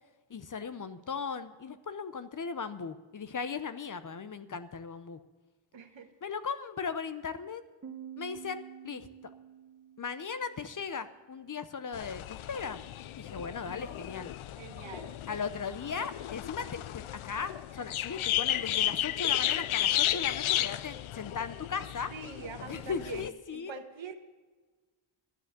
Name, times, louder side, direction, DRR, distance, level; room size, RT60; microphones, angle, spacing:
voice 1, 0.3-5.2 6.2-7.6 8.2-9.1 10.0-12.8 13.2-14.3 15.3-22.1 22.6-23.7, left 5 dB, 40° left, 12 dB, 0.7 m, -37 dB
voice 2, 5.7-6.1 14.6-15.1 22.1-24.1, right 5 dB, 70° right, 6 dB, 1.5 m, -44 dB
Piano, 7.8-11.3, right 9 dB, 30° right, 1.6 m, -49 dB
sound 1, 11.9-23.3, left 13 dB, 80° left, 0.6 m, -33 dB
12.5 x 7.7 x 8.0 m, 1.3 s
wide cardioid pair, 125°, 48 cm